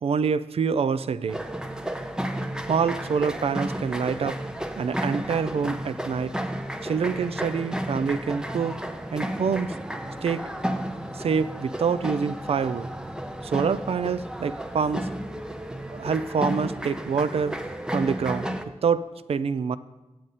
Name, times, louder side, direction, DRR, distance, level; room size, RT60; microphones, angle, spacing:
voice 1, 0.0-1.4 2.7-4.4 4.8-6.3 6.8-8.8 9.1-9.7 10.2-10.4 11.1-12.9 13.4-15.1 15.9-17.6 17.9-19.8, right 6 dB, 65° right, 14 dB, 0.4 m, -26 dB
sound 1, 1.3-18.6, right 1 dB, 5° right, 0.6 m, -32 dB
8.8 x 7.6 x 4.1 m, 1.1 s
wide cardioid pair, 80°, 11 cm